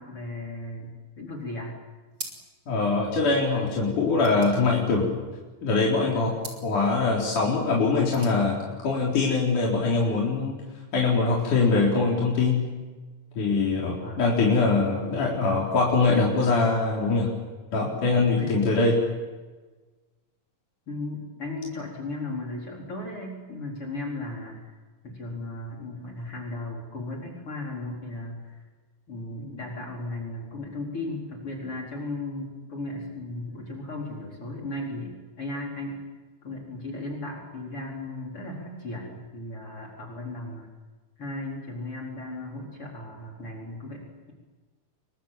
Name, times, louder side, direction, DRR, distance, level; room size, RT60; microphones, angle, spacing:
voice 1, 0.0-1.8 13.8-14.2 18.2-18.7 20.9-24.6 25.0-28.6 29.1-36.0 36.4-40.7 41.2-44.3, left 2 dB, 40° left, -1 dB, 5.3 m, -36 dB
sound 1, 2.1-2.7 3.0-3.1 3.3-5.5 6.3-6.7 7.8-8.4, right 3 dB, 35° right, 5.1 m, -42 dB
voice 2, 2.7-5.1 5.6-6.4 6.6-8.6 8.8-10.6 10.9-12.7 13.4-17.3 17.7-19.0, left 3 dB, 70° left, -3 dB, 5.7 m, -23 dB
30.0 x 24.0 x 7.6 m, 1.3 s
omnidirectional pair, 3.7 m